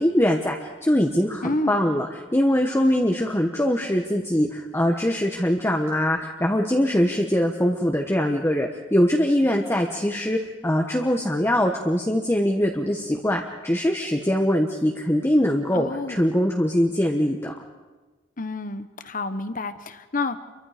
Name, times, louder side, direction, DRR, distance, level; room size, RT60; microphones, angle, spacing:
voice 1, 0.0-17.5, equal, 15° left, 2 dB, 1.2 m, -22 dB
voice 2, 1.4-1.8 15.7-16.2 18.4-20.4, left 2 dB, 45° left, 11 dB, 1.1 m, -29 dB
28.5 x 23.5 x 5.1 m, 1.3 s
head